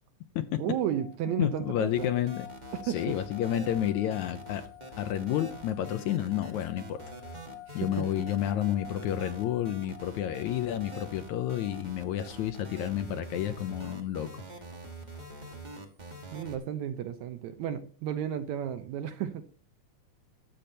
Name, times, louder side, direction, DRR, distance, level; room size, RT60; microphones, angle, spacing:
voice 1, 0.6-2.1 2.7-3.1 7.7-8.1 16.3-19.4, right 10 dB, 70° right, 1.9 m, -33 dB
sound 1, 0.8-12.7, left 13 dB, 90° left, 1.5 m, -49 dB
voice 2, 1.4-2.5 2.8-4.6 5.0-7.0 7.7-14.4, left 11 dB, 75° left, 1.9 m, -30 dB
sound 2, 1.9-16.6, right 2 dB, 30° right, 0.7 m, -45 dB
12.0 x 7.9 x 4.3 m
omnidirectional pair, 3.8 m